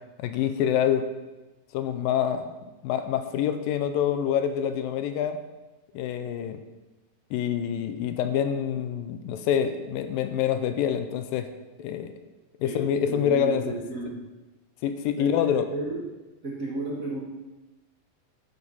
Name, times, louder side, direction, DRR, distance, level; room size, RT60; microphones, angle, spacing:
voice 1, 0.2-1.1 1.7-2.5 2.8-5.4 5.9-6.6 7.3-11.5 11.8-12.1 12.6-13.7 14.8-15.7, left 9 dB, 80° left, 9 dB, 2.3 m, -26 dB
voice 2, 13.1-14.2 15.2-16.0 16.4-17.2, right 3 dB, 90° right, -4 dB, 0.7 m, -33 dB
11.0 x 7.2 x 5.6 m, 1.1 s
omnidirectional pair, 4.2 m